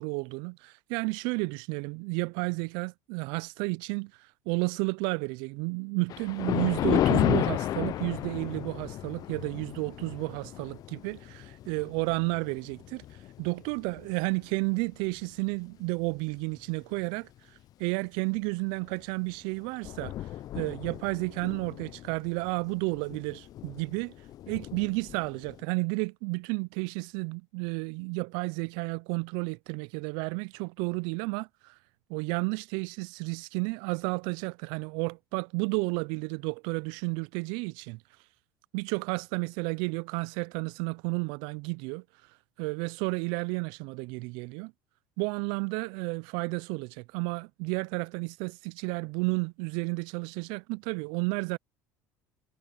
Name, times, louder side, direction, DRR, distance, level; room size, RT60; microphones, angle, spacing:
voice 1, 0.0-20.3 20.5-24.1 24.5-31.8 32.1-38.0 38.7-42.3 42.6-44.7 45.2-51.6, right 30 dB, 70° right, 0.4 m, -32 dB
Thunder, 6.1-14.6 15.1-15.4 16.1-16.2 16.5-16.6 18.8-19.0 19.3-19.4 19.6-25.6, left 13 dB, 50° left, 0.6 m, -33 dB
supercardioid pair, 90°, 8 cm